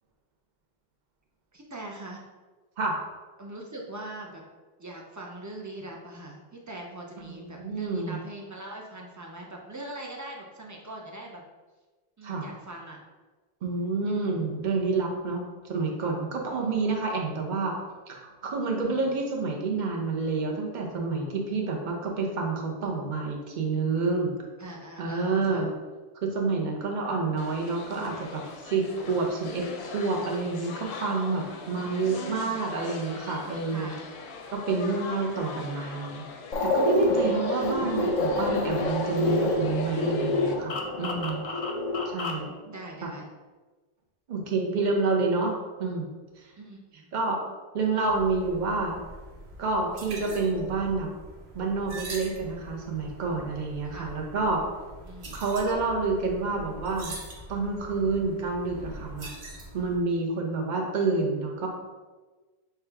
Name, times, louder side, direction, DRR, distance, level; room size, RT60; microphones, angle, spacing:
voice 1, 1.5-2.2 3.4-4.4 4.8-11.4 12.2-13.0 16.6-16.9 18.9-19.1 24.6-25.7 31.7-32.6 33.7-34.1 37.2-37.6 42.6-43.3 46.6-47.1 53.8-54.1 55.0-55.4, right 2 dB, 25° right, 0 dB, 0.4 m, -42 dB
voice 2, 7.3-8.2 12.2-12.5 13.6-17.7 18.1-24.3 25.0-25.7 26.2-29.7 29.9-33.9 34.5-36.2 36.6-41.4 42.0-42.5 43.0-43.1 44.3-46.1 47.1-47.4 47.7-49.0 49.6-51.1 51.5-54.6 55.3-57.1 57.5-59.3 59.7-61.7, right 3 dB, 50° right, 0 dB, 0.8 m, -28 dB
sound 1, 27.4-40.5, left 5 dB, 85° left, 0.8 m, -42 dB
sound 2, 36.5-42.5, left 2 dB, 50° left, 0.6 m, -27 dB
sound 3, 48.1-60.0, right 1 dB, 85° right, 1.1 m, -43 dB
5.9 x 2.3 x 3.3 m, 1.3 s
omnidirectional pair, 1.0 m